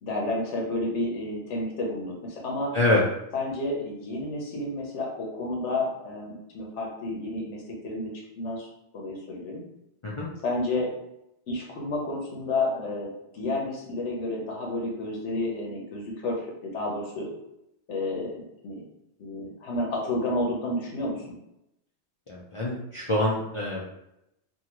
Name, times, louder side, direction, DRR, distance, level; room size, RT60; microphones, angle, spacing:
voice 1, 0.0-2.7 3.3-8.7 8.9-9.6 10.4-10.9 11.5-17.3 17.9-18.4 18.6-18.8 19.2-21.3, left 2 dB, 85° left, -1 dB, 1.1 m, -31 dB
voice 2, 22.3-23.8, left 1 dB, 45° left, -5 dB, 0.4 m, -25 dB
2.7 x 2.5 x 2.9 m, 0.83 s
omnidirectional pair, 1.2 m